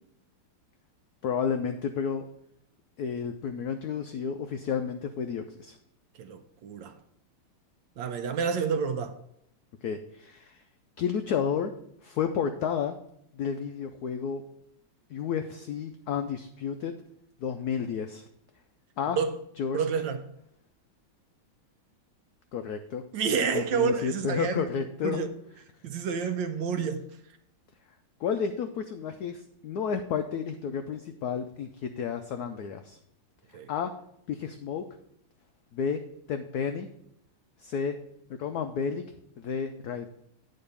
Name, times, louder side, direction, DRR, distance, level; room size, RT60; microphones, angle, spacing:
voice 1, 1.2-2.3 3.0-5.8 9.8-10.6 11.0-11.7 12.0-13.0 13.3-14.4 15.1-16.9 17.4-18.2 19.0-19.2 19.6-19.8 22.5-23.0 23.5-25.3 28.2-31.7 32.0-33.0 33.7-33.9 34.3-34.9 35.7-36.0 36.3-36.9 37.6-38.0 38.4-39.0 39.4-40.1, left 7 dB, 85° left, 0.8 m, -31 dB
voice 2, 6.2-6.9 8.0-9.1 19.2-19.3 19.7-20.2 23.1-24.7 25.0-25.3 25.8-27.0 33.5-33.7, right 6 dB, 70° right, 1.2 m, -29 dB
8.7 x 4.0 x 6.6 m
omnidirectional pair, 2.3 m